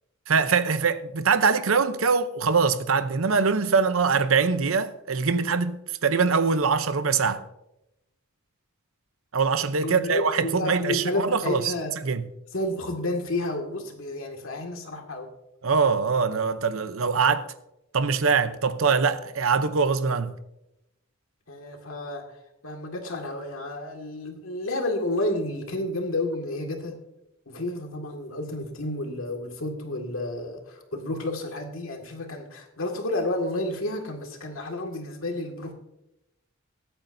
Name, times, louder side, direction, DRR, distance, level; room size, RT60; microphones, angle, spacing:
voice 1, 0.3-7.4 9.3-11.7 12.0-12.3 15.6-17.5 17.9-20.3, right 5 dB, 75° right, 0.8 m, -23 dB
voice 2, 9.8-11.9 12.5-15.3 21.5-22.2 22.6-27.0 27.5-35.7, left 1 dB, 75° left, 2.1 m, -31 dB
22.5 x 8.8 x 2.7 m
head